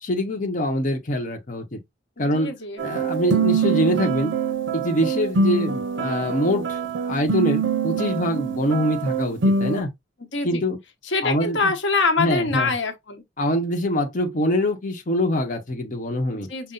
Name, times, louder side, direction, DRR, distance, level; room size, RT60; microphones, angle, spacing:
voice 1, 0.0-1.8 2.2-2.5 2.8-4.3 4.7-6.8 7.1-9.9 10.4-10.8 11.2-11.7 12.2-12.7 13.4-16.5, equal, 45° left, 0.9 m, -24 dB
voice 2, 2.2-2.8 10.3-10.6 11.0-13.2 16.3-16.7, left 3 dB, 85° left, 1.0 m, -25 dB
sound 1, 2.8-9.8, right 4 dB, 80° right, 0.6 m, -24 dB
5.5 x 2.0 x 3.8 m
head